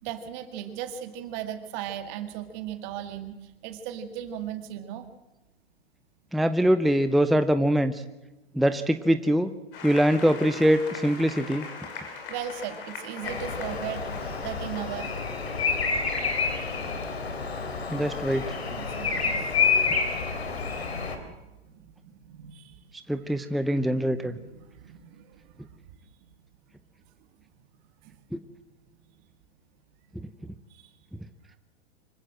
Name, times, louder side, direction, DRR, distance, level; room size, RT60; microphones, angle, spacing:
voice 1, 0.0-5.1 12.0-15.2 18.7-19.6 20.9-22.8 23.2-23.3 23.8-25.8 28.0-28.1 30.7-30.9, right 9 dB, 45° right, 8 dB, 2.2 m, -38 dB
voice 2, 6.3-7.9 8.5-9.5 9.8-11.7 17.9-18.4 23.1-24.4, equal, ahead, 10 dB, 0.7 m, -23 dB
Applause, 9.7-15.4, left 4 dB, 60° left, 6.4 m, -41 dB
Bird vocalization bird call bird song, 13.2-21.2, left 5 dB, 80° left, 3.6 m, -28 dB
25.5 x 15.5 x 7.7 m, 1.0 s
hypercardioid pair, 110°, 31 cm